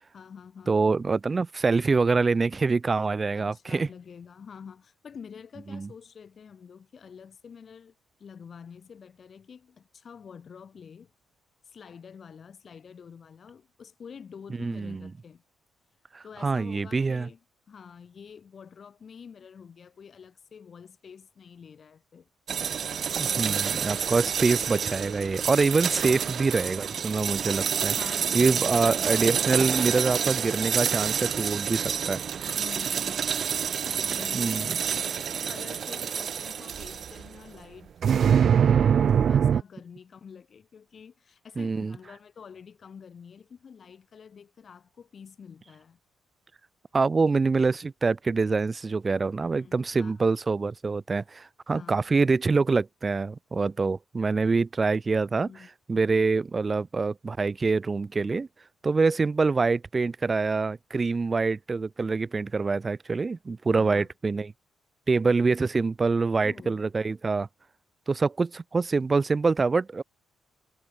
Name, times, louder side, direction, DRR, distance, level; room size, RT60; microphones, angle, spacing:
voice 1, 0.1-0.9 3.3-7.9 8.2-11.1 11.6-15.4 16.2-17.4 17.7-22.3 27.9-28.5 32.6-33.2 34.0-35.2 35.5-37.9 38.2-46.0 49.4-50.3 51.7-52.1 55.3-55.7 63.7-64.1 66.3-66.9, left 6 dB, 35° left, 5.1 m, -47 dB
voice 2, 0.7-3.9 5.7-5.9 14.6-15.1 16.1-17.3 23.2-28.0 28.3-32.2 34.3-34.7 41.6-42.0 46.9-55.5 55.9-58.5 58.8-64.5 65.1-67.5 68.1-70.0, right 4 dB, 20° right, 0.6 m, -25 dB
sound 1, 22.5-37.3 38.0-39.6, right 8 dB, 45° right, 1.1 m, -26 dB
cardioid pair, 170°, 0 cm